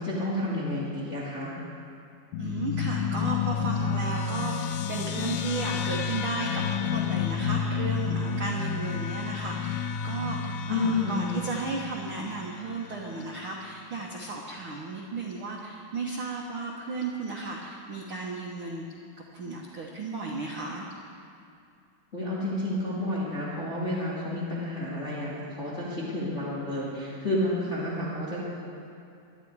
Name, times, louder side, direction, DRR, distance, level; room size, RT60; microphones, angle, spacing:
voice 1, 0.0-1.5 10.7-11.4 22.1-28.4, left 1 dB, 20° left, -8 dB, 2.3 m, -30 dB
sound 1, 2.3-13.1, left 6 dB, 80° left, 2.2 m, -30 dB
voice 2, 2.4-18.8 19.3-20.8, right 3 dB, 75° right, -1 dB, 1.2 m, -34 dB
21.5 x 11.0 x 4.8 m, 2.5 s
omnidirectional pair, 4.2 m